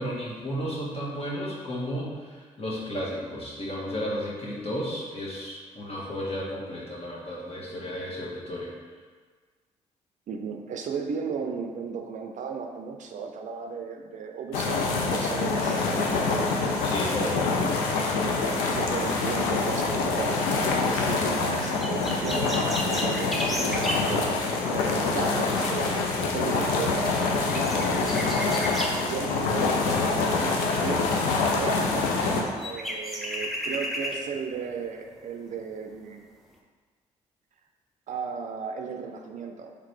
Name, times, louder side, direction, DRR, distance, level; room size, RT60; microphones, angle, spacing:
voice 1, 0.0-8.7 16.8-17.6, equal, 40° left, -5 dB, 1.3 m, -33 dB
voice 2, 10.3-14.8 15.1-16.4 18.7-31.0 31.3-36.3 38.1-39.7, right 5 dB, 55° right, 4 dB, 0.5 m, -35 dB
sound 1, 14.5-32.4, left 3 dB, 80° left, 0.5 m, -26 dB
sound 2, 21.8-24.1 26.9-27.0 27.2-29.0 32.0-32.1 32.5-34.2 34.8-34.9, equal, ahead, 0.7 m, -33 dB
3.8 x 3.3 x 3.2 m, 1.5 s
hypercardioid pair, 50°, 15 cm